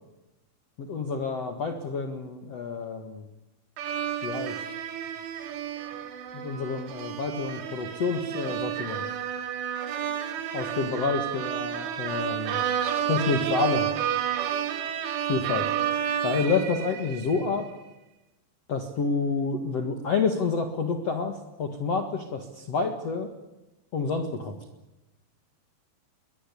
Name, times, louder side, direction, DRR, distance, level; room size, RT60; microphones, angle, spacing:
voice 1, 0.8-3.3 4.2-4.6 6.3-9.1 10.5-12.6 13.1-13.9 15.3-15.7 16.2-17.7 18.7-23.3 23.9-24.6, left 4 dB, 55° left, 5 dB, 1.9 m, -28 dB
sound 1, 3.8-17.5, right 9 dB, 85° right, 4.5 m, -31 dB
23.0 x 20.5 x 8.6 m, 1.0 s
omnidirectional pair, 5.5 m